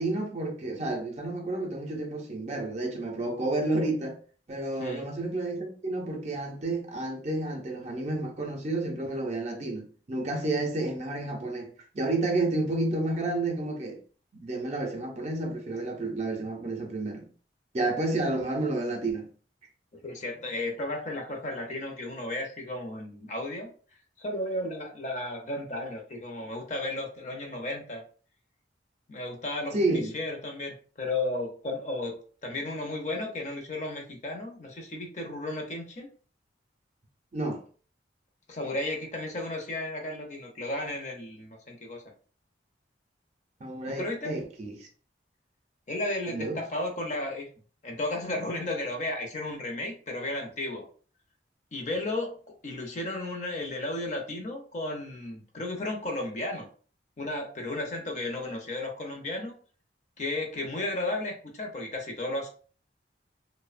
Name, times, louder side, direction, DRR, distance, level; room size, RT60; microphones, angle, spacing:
voice 1, 0.0-4.2 4.5-14.0 14.4-17.3 17.7-19.3 29.7-30.1 37.3-37.6 43.6-44.9 46.3-46.6, right 2 dB, 40° right, 0.5 m, -30 dB
voice 2, 19.9-23.7 24.2-28.0 29.1-29.8 30.1-32.2 32.4-36.1 38.5-42.0 43.9-44.4 45.9-47.5 47.8-50.9 51.7-52.4 52.6-56.7 57.2-59.5 60.2-62.5, left 2 dB, 40° left, 0.5 m, -34 dB
2.7 x 2.0 x 2.4 m
head